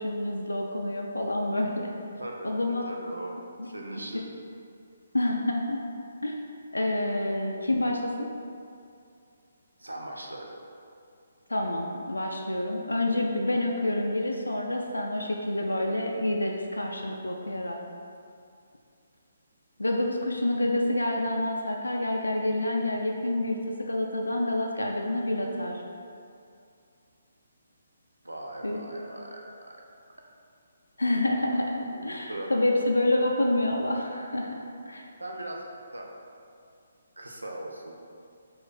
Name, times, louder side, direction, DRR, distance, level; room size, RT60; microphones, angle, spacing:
voice 1, 0.0-1.9 2.4-2.9 3.6-3.7 5.1-5.8 6.2-6.3 6.7-8.3 11.5-17.8 19.8-25.8 28.6-28.8 31.0-35.1, left 1 dB, 85° left, 0 dB, 0.4 m, -28 dB
voice 2, 2.2-2.5 2.8-3.4 3.6-4.3 9.8-10.6 28.2-29.7 31.9-32.8 35.2-35.6 35.9-36.1 37.2-37.9, right 1 dB, 85° right, 0 dB, 0.6 m, -39 dB
4.2 x 2.5 x 4.0 m, 2.4 s
figure-of-eight pair, 140°, 0 cm